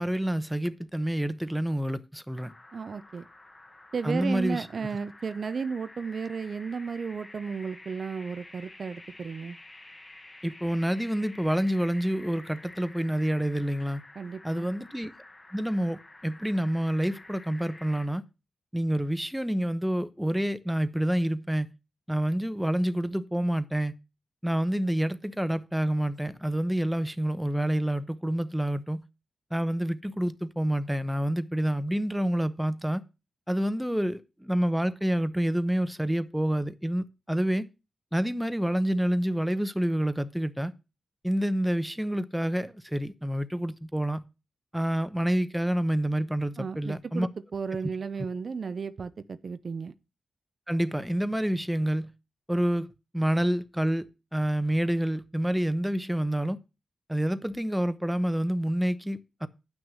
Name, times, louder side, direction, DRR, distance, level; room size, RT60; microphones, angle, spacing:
voice 1, 0.0-2.5 4.0-4.7 10.4-14.0 14.4-15.1 15.5-18.2 18.7-21.7 22.1-23.9 24.4-29.0 29.5-33.0 33.5-37.7 38.1-40.7 41.2-44.2 44.7-47.3 50.7-52.1 52.5-52.9 53.1-54.0 54.3-56.6 57.1-59.5, right 1 dB, 5° right, 0.8 m, -28 dB
sound 1, 2.4-18.1, left 2 dB, 25° left, 1.2 m, -50 dB
voice 2, 2.7-3.3 3.9-9.6 14.2-14.7 46.6-49.9, right 5 dB, 60° right, 0.5 m, -34 dB
9.1 x 6.2 x 6.2 m
cardioid pair, 70°, 0 cm